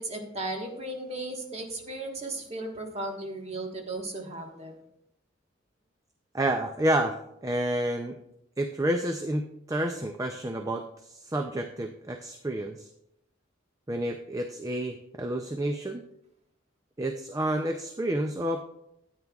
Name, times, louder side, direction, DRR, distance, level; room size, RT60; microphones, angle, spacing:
voice 1, 0.0-4.8, right 2 dB, 35° right, 1 dB, 1.5 m, -36 dB
voice 2, 6.3-8.1 8.6-12.9 13.9-16.0 17.0-18.7, right 1 dB, 15° right, 5 dB, 0.4 m, -30 dB
13.0 x 9.0 x 2.4 m, 0.80 s
head